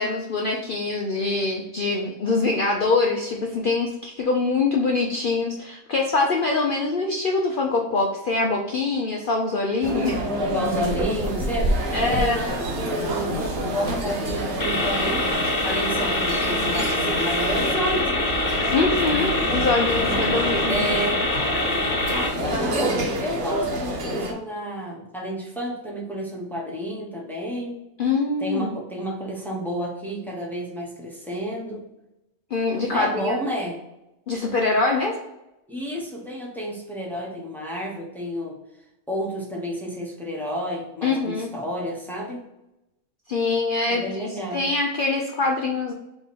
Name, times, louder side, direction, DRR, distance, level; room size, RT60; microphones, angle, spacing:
voice 1, 0.0-10.2 11.9-12.4 18.7-20.8 22.5-22.8 28.0-28.7 32.5-33.4 34.3-35.2 41.0-41.5 43.3-45.9, left 3 dB, 85° left, 0 dB, 0.4 m, -24 dB
sound 1, 9.8-24.3, right 1 dB, 70° right, 1.1 m, -28 dB
voice 2, 10.5-15.3 15.6-18.4 20.1-20.2 20.7-21.2 22.1-27.8 28.4-31.8 32.9-33.8 35.7-38.6 39.1-42.4 43.9-44.7, equal, ahead, -3 dB, 0.5 m, -30 dB
sound 2, 14.6-22.3, left 1 dB, 40° left, 0.9 m, -25 dB
3.4 x 2.9 x 4.0 m, 0.91 s
omnidirectional pair, 1.5 m